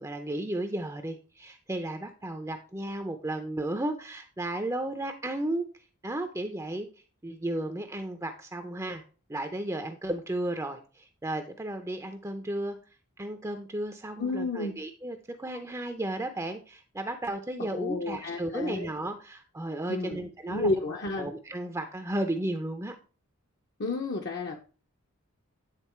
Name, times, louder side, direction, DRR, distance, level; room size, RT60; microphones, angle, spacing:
voice 1, 0.0-5.7 6.0-6.9 7.2-9.0 9.3-12.8 13.2-20.7 21.2-22.9, right 1 dB, 15° right, 7 dB, 0.5 m, -34 dB
voice 2, 14.2-14.7 17.6-18.9 19.9-21.3 23.8-24.6, left 2 dB, 50° left, 2 dB, 0.7 m, -31 dB
9.1 x 3.8 x 4.3 m, 0.35 s
head